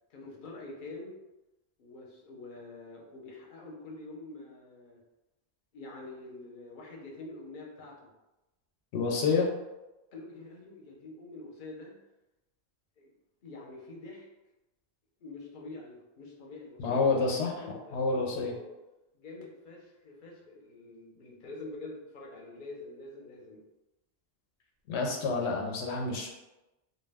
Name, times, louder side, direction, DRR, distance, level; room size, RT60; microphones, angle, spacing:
voice 1, 0.1-1.2 1.8-5.0 5.7-8.1 10.1-11.9 13.0-13.1 13.4-14.3 15.2-17.2 17.6-18.7 19.1-23.6, left 2 dB, 55° left, -2 dB, 0.7 m, -46 dB
voice 2, 8.9-9.5 16.8-17.5 17.9-18.6 24.9-26.3, left 4 dB, 85° left, 0 dB, 0.9 m, -28 dB
2.2 x 2.2 x 3.3 m, 1.0 s
omnidirectional pair, 1.1 m